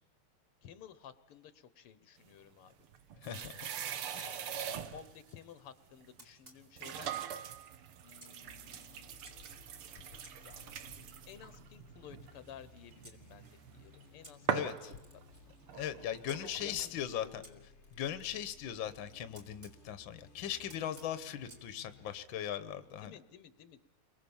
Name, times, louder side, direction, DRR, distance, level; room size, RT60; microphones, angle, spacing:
voice 1, 0.6-2.8 4.2-7.1 8.0-9.1 10.4-10.6 11.3-15.2 16.4-17.7 23.0-23.8, left 9 dB, 85° left, 14 dB, 2.0 m, -54 dB
sound 1, 2.6-5.2 6.0-6.1 6.8-14.0 14.5-16.9, right 9 dB, 80° right, 2.0 m, -42 dB
voice 2, 3.2-3.7 4.1-4.2 14.5-14.9 15.7-17.4 17.9-23.2, left 10 dB, 65° left, 12 dB, 1.8 m, -39 dB
Camera, 4.2-5.4 6.2-7.4 8.2-9.3 10.2-13.2 14.2-16.4 17.4-19.8 20.7-21.7, right 1 dB, 25° right, 3.1 m, -60 dB
sound 2, 8.5-22.2, left 3 dB, 35° left, 1.4 m, -60 dB
30.0 x 22.5 x 7.2 m, 0.88 s
omnidirectional pair, 2.4 m